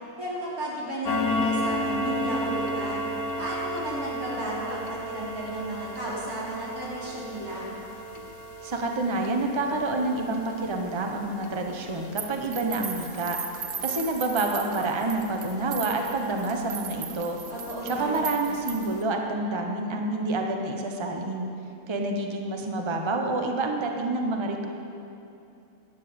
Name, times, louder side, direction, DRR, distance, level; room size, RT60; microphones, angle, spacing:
voice 1, 0.2-3.0 3.4-7.7 17.5-18.3, right 1 dB, 85° right, -6 dB, 3.9 m, -33 dB
sound 1, 1.1-16.2 16.5-16.7 17.2-17.3 17.7-17.8 18.3-18.4 18.7-18.8, left 1 dB, 85° left, 1.6 m, -34 dB
voice 2, 8.6-13.4 13.8-17.4 17.8-21.5 21.9-24.7, right 2 dB, 20° right, 2 dB, 1.0 m, -28 dB
sound 2, 12.2-19.0, right 7 dB, 60° right, 1.2 m, -37 dB
12.5 x 10.0 x 8.1 m, 2.7 s
omnidirectional pair, 1.5 m